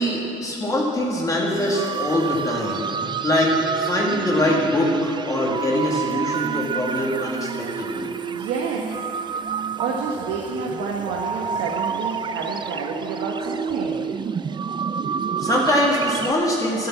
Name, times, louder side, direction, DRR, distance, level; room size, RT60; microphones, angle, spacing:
voice 1, 0.0-2.8 3.2-8.1 15.4-16.9, left 1 dB, 20° left, -3 dB, 2.0 m, -23 dB
sound 1, 1.5-16.3, right 6 dB, 25° right, 0.4 m, -29 dB
voice 2, 8.3-9.0 9.8-14.1, right 4 dB, 85° right, -1 dB, 1.5 m, -29 dB
12.0 x 11.0 x 7.4 m, 3.0 s
cardioid pair, 110°, 17 cm